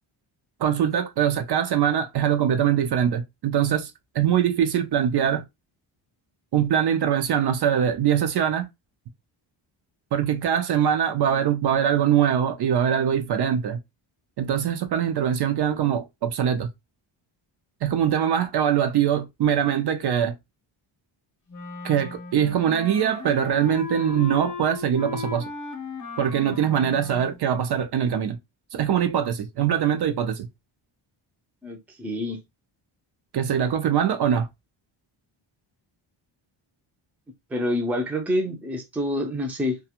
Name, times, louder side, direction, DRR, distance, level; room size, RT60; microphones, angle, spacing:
voice 1, 0.6-5.4 6.5-8.7 10.1-13.8 14.4-16.7 17.8-20.3 21.8-25.4 26.2-28.4 28.7-30.5 33.3-34.5, right 9 dB, 55° right, 0.5 m, -23 dB
Wind instrument woodwind instrument, 21.5-27.4, left 4 dB, 40° left, 0.8 m, -36 dB
voice 2, 31.6-32.4 37.5-39.8, left 1 dB, 5° right, 0.4 m, -27 dB
2.4 x 2.3 x 2.8 m
wide cardioid pair, 160°, 49 cm